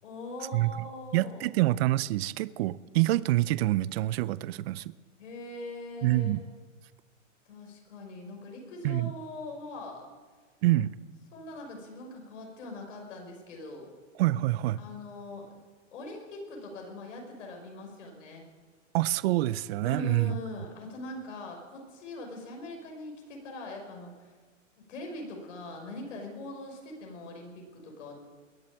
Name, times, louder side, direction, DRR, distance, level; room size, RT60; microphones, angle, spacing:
voice 1, 0.0-1.5 5.2-6.3 7.5-10.1 11.3-13.9 14.8-15.5 15.9-18.4 19.8-24.3 24.9-28.1, left 2 dB, 75° left, 1 dB, 6.1 m, -42 dB
voice 2, 1.1-4.9 6.0-6.4 8.8-9.1 10.6-10.9 14.2-14.8 18.9-20.4, right 16 dB, 55° right, 18 dB, 0.6 m, -26 dB
21.5 x 7.6 x 8.8 m, 1.4 s
hypercardioid pair, 135°, 37 cm